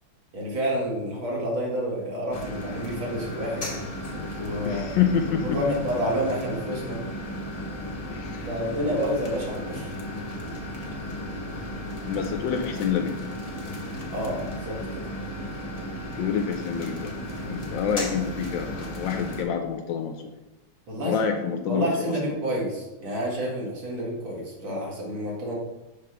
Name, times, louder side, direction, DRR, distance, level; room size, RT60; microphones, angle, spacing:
voice 1, 0.3-3.7 4.4-4.9 5.4-7.0 8.5-9.9 14.1-15.0 20.9-21.2 21.7-25.5, equal, 65° right, -3 dB, 2.5 m, -29 dB
sound 1, 2.3-19.4, equal, 45° left, 0.5 m, -35 dB
voice 2, 4.6-5.7 8.1-8.5 12.1-13.2 16.2-17.2 17.4-20.2 21.0-22.1, left 7 dB, 75° left, 5 dB, 1.2 m, -27 dB
6.7 x 3.2 x 5.8 m, 1.0 s
omnidirectional pair, 2.3 m